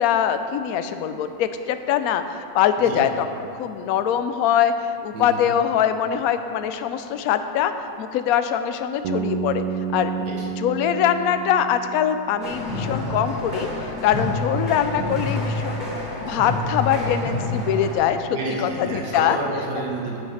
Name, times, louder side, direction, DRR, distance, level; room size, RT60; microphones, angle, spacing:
voice 1, 0.0-3.3 3.6-7.7 8.0-9.6 9.9-10.1 10.6-15.9 16.2-18.3 18.6-19.4, left 9 dB, 70° left, 9 dB, 0.9 m, -23 dB
voice 2, 5.1-5.5 10.2-10.5 18.3-20.2, right 1 dB, 70° right, -2 dB, 2.1 m, -30 dB
Bass guitar, 9.0-13.0, right 6 dB, 85° right, 1.3 m, -30 dB
sound 1, 12.4-17.9, left 1 dB, 30° left, 2.6 m, -28 dB
8.9 x 8.5 x 5.7 m, 2.6 s
omnidirectional pair, 1.8 m